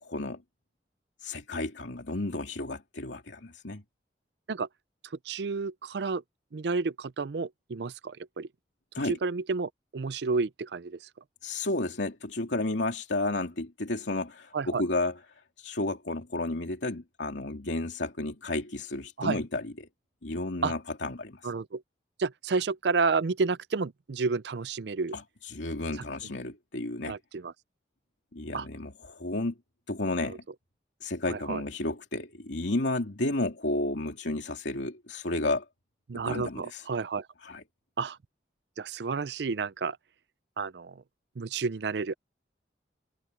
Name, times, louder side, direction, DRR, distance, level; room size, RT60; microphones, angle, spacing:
voice 1, 0.0-0.4 1.2-3.8 8.9-9.2 11.4-19.9 20.2-21.5 25.1-27.2 28.3-29.5 29.9-30.4 31.0-35.6 36.1-36.9 37.4-37.6, left 2 dB, 90° left, 2.7 m, -32 dB
voice 2, 5.3-6.2 6.5-8.5 9.1-11.0 14.5-14.8 19.2-19.4 20.6-20.7 21.4-21.8 22.2-25.2 27.1-27.5 28.5-28.7 30.3-30.4 31.3-31.6 36.1-37.3 38.0-38.2 38.8-40.0 40.6-41.0 41.4-42.1, right 4 dB, 70° right, 0.5 m, -30 dB
head